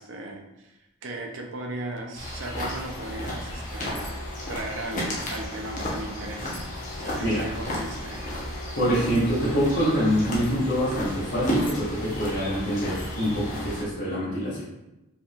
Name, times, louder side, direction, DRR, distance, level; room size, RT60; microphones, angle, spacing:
voice 1, 0.0-4.1 4.5-6.6 7.0-8.2, right 2 dB, 55° right, 1 dB, 0.7 m, -36 dB
sound 1, 2.1-13.8, left 1 dB, 35° left, 0.9 m, -33 dB
voice 2, 8.7-14.7, equal, 50° left, -11 dB, 1.4 m, -25 dB
4.9 x 3.5 x 2.5 m, 0.96 s
head